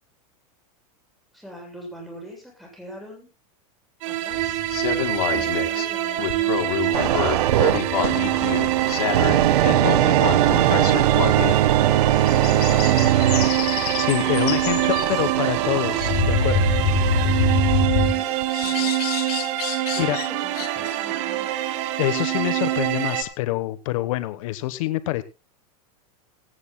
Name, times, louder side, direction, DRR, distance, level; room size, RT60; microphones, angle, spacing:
voice 1, 1.3-3.3 4.0-4.6 5.3-7.2 8.4-9.9 11.4-13.1 14.6-16.5 17.0-17.4 17.9-19.0 19.9-21.5, equal, ahead, -1 dB, 8.0 m, -43 dB
sound 1, 4.0-23.2, right 14 dB, 55° right, 3.0 m, -25 dB
sound 2, 4.3-5.9 6.2-11.6 12.3-15.2 15.9-18.1 18.5-20.3 20.5-20.9, left 5 dB, 80° left, 3.4 m, -26 dB
sound 3, 6.9-17.9 18.4-18.6, right 12 dB, 90° right, 1.5 m, -22 dB
voice 2, 14.0-16.7 19.8-20.2 22.0-25.2, left 16 dB, 60° left, 13 dB, 1.1 m, -26 dB
17.5 x 17.0 x 2.2 m, 0.30 s
supercardioid pair, 160°, 19 cm